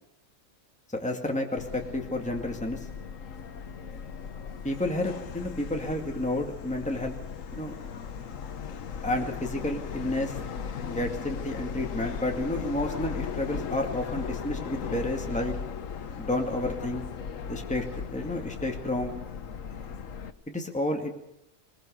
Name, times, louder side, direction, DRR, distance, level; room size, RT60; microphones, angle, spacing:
voice 1, 0.9-2.8 4.6-7.2 7.5-7.7 9.0-10.4 10.9-15.6 16.2-17.0 17.5-19.2 20.5-21.1, left 1 dB, 5° left, 2 dB, 2.2 m, -31 dB
Subway metro underground, 1.6-20.3, left 6 dB, 70° left, 1.4 m, -37 dB
21.5 x 21.0 x 6.5 m, 0.81 s
omnidirectional pair, 1.4 m